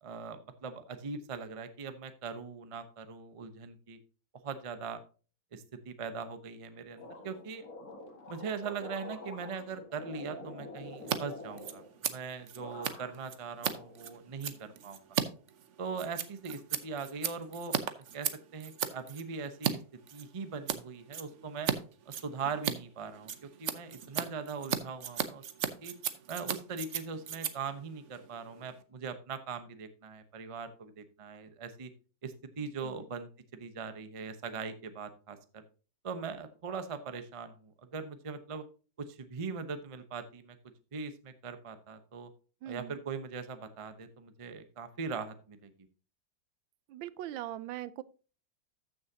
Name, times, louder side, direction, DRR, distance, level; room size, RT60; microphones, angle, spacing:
voice 1, 0.0-4.0 4.4-5.0 5.5-7.7 8.3-15.1 15.8-17.8 18.1-19.8 20.1-21.7 22.1-25.9 26.3-31.9 32.2-35.6 36.0-38.6 39.0-40.6 40.9-42.3 42.7-45.7, right 5 dB, 35° right, 0.5 m, -41 dB
sound 1, 7.0-12.2 12.6-13.3 13.6-14.5, left 2 dB, 50° left, 2.4 m, -47 dB
Scissors, 11.0-11.2 11.4-19.7 20.1-20.8 21.1-21.8 22.0-28.8, right 8 dB, 55° right, 0.8 m, -36 dB
voice 2, 42.6-43.0 46.9-48.0, right 13 dB, 85° right, 1.3 m, -41 dB
13.5 x 6.4 x 2.8 m
omnidirectional pair, 2.1 m